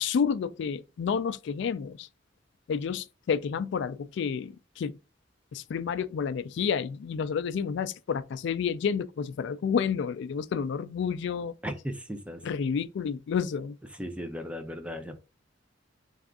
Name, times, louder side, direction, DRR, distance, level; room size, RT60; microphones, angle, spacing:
voice 1, 0.0-2.1 2.7-5.0 5.5-11.5 12.4-13.8, left 6 dB, 65° left, 0.3 m, -30 dB
voice 2, 11.6-12.4 13.9-15.2, equal, 5° right, 0.5 m, -36 dB
3.4 x 2.4 x 3.6 m
head